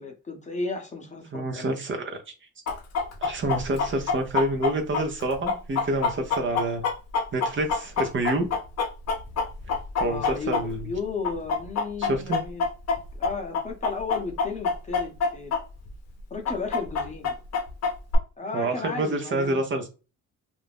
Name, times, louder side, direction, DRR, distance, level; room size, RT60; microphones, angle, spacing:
voice 1, 0.0-1.7 6.5-6.6 10.0-12.6 13.2-15.6 16.3-17.4 18.4-19.6, left 4 dB, 25° left, 0.8 m, -34 dB
voice 2, 1.3-2.0 3.2-6.8 7.3-8.5 10.0-10.9 12.0-12.4 18.5-19.9, right 2 dB, 40° right, 0.7 m, -27 dB
Chicken rooster, 2.7-11.0 11.2-15.6 15.9-16.0 16.4-18.2, left 5 dB, 60° left, 0.7 m, -26 dB
2.5 x 2.0 x 3.4 m
cardioid pair, 90°, 30 cm